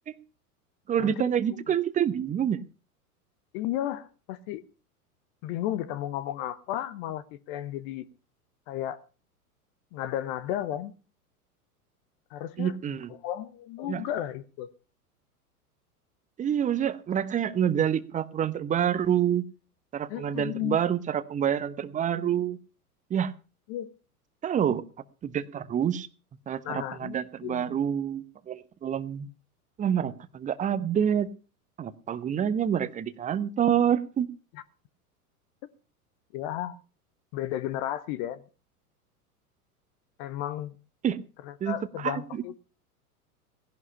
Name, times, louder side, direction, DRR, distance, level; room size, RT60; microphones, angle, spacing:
voice 1, 0.9-2.6 12.6-13.1 13.9-14.0 16.4-19.4 19.9-22.6 23.1-23.3 24.4-24.8 25.2-26.1 26.5-29.3 29.8-31.3 31.8-34.3 41.0-41.2 41.6-41.8 42.0-42.4, right 9 dB, 15° right, 1.0 m, -27 dB
voice 2, 3.5-4.6 5.4-8.0 8.7-9.0 9.9-10.9 12.3-12.8 13.1-14.7 20.1-20.8 23.7-23.9 26.6-27.8 34.5-34.6 36.3-36.8 37.3-38.4 40.2-40.7 41.4-42.6, left 12 dB, 35° left, 1.0 m, -33 dB
18.0 x 11.0 x 5.6 m
figure-of-eight pair, 90°, 46 cm